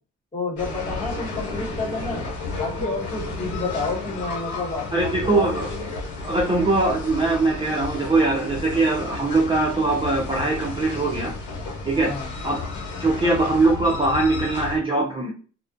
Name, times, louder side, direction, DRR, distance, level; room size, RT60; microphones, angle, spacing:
voice 1, 0.3-2.3 2.6-5.6 12.0-12.3, left 3 dB, 25° left, -2 dB, 1.2 m, -30 dB
sound 1, 0.6-14.8, left 3 dB, 75° left, 1.0 m, -32 dB
voice 2, 4.9-5.7 6.2-11.3 11.8-12.1 12.4-12.6 13.0-15.3, right 2 dB, 15° right, -2 dB, 0.5 m, -21 dB
2.4 x 2.1 x 2.5 m, 0.37 s
cardioid pair, 90°, 30 cm